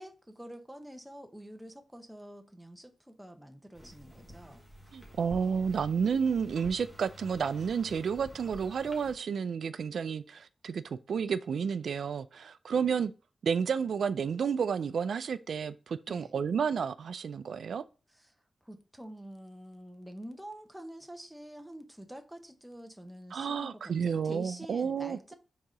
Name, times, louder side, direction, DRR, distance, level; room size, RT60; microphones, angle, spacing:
voice 1, 0.0-4.6 16.1-16.3 18.1-18.3 18.6-25.3, equal, 5° right, 0.8 m, -47 dB
sound 1, 3.7-9.1, equal, 15° left, 1.3 m, -49 dB
voice 2, 4.9-13.1 13.4-17.8 23.3-25.3, right 6 dB, 85° right, 0.3 m, -31 dB
4.7 x 3.8 x 5.4 m
wide cardioid pair, 135°, 0 cm